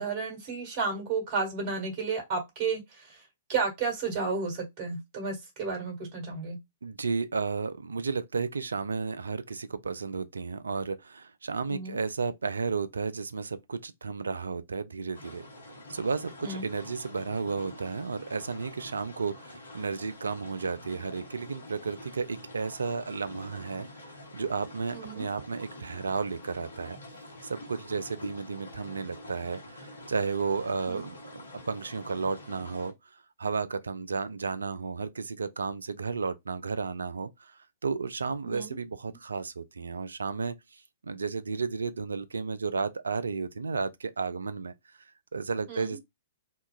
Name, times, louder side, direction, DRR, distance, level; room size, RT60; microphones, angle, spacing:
voice 1, 0.0-3.2 3.5-6.6 11.7-12.0 16.4-16.7 24.9-25.3 30.9-31.0 38.4-38.8 39.1-39.2 45.7-46.0, right 4 dB, 40° right, 1.5 m, -32 dB
voice 2, 6.8-15.4 15.9-23.9 24.3-27.0 27.4-31.4 31.7-32.9 33.4-37.5 37.8-40.5 41.0-44.7 45.3-46.0, right 4 dB, 75° right, 0.3 m, -33 dB
sound 1, 15.1-32.9, left 1 dB, 70° left, 0.9 m, -47 dB
2.8 x 2.3 x 2.2 m
figure-of-eight pair, 110°, 0 cm